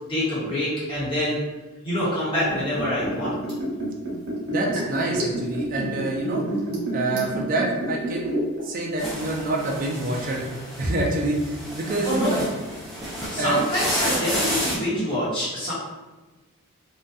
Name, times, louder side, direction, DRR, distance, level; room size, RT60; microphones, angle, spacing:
voice 1, 0.1-1.4 1.8-3.4 12.0-12.5 13.3-15.7, equal, 25° left, -10 dB, 1.1 m, -25 dB
Liquid, 2.4-8.6 8.9-9.0, right 1 dB, 80° right, 1.0 m, -28 dB
voice 2, 4.5-6.4 6.9-8.4 8.6-10.4 10.8-12.5 13.4-13.6, right 2 dB, 40° right, -1 dB, 0.4 m, -26 dB
sound 1, 9.0-14.8, equal, ahead, 0.7 m, -31 dB
2.7 x 2.2 x 2.4 m, 1.2 s
head